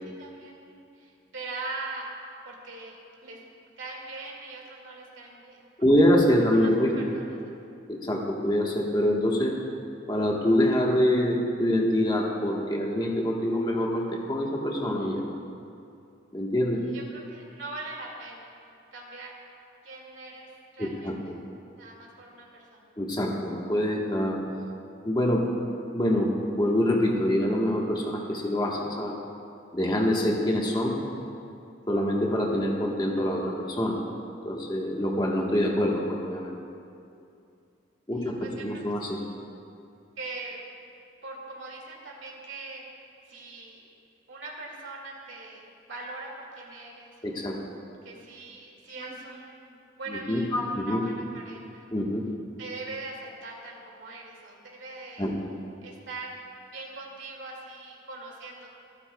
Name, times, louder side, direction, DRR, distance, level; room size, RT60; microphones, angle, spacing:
voice 1, 0.2-2.1 2.4-3.4 3.8-5.7 6.5-7.5 16.9-18.6 18.9-19.3 19.8-21.4 21.8-22.9 38.1-38.8 39.2-39.3 40.2-40.6 41.2-42.8 43.3-43.8 44.3-47.4 48.0-51.9 52.6-55.3 55.8-56.4 56.7-58.7, right 3 dB, 90° right, -2 dB, 2.2 m, -41 dB
voice 2, 5.8-7.1 7.9-9.5 10.1-15.2 16.3-16.8 20.8-21.1 23.0-24.4 25.0-25.7 25.9-29.2 29.7-31.0 31.9-34.0 34.4-36.6 38.1-39.2 47.2-47.6 49.0-49.1 50.1-51.1 51.9-52.2 55.2-55.3, left 1 dB, 25° left, -1 dB, 1.3 m, -25 dB
28.0 x 9.8 x 2.3 m, 2.6 s
head